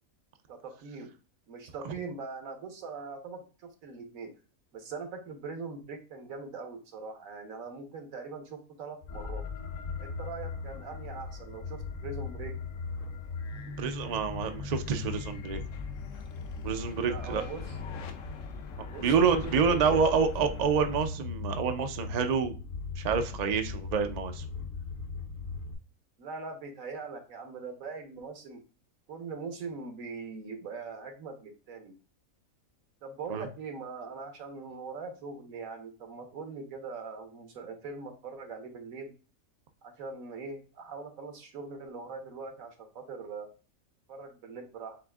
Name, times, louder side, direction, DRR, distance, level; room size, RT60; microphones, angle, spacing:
voice 1, 0.5-1.1 1.5-4.3 4.7-9.4 10.0-12.5 17.1-17.8 18.9-20.1 26.2-28.6 29.1-31.9 33.0-39.1 39.8-43.5 44.1-45.0, right 4 dB, 75° right, 5 dB, 1.4 m, -41 dB
sound 1, 9.0-25.7, left 4 dB, 45° left, 0.8 m, -39 dB
sound 2, 9.1-21.1, left 4 dB, 70° left, 1.0 m, -45 dB
voice 2, 13.7-15.6 16.6-17.4 19.0-22.5 23.0-24.5 33.3-33.4, right 6 dB, 60° right, 6 dB, 0.4 m, -27 dB
7.6 x 2.6 x 2.3 m, 0.35 s
omnidirectional pair, 1.5 m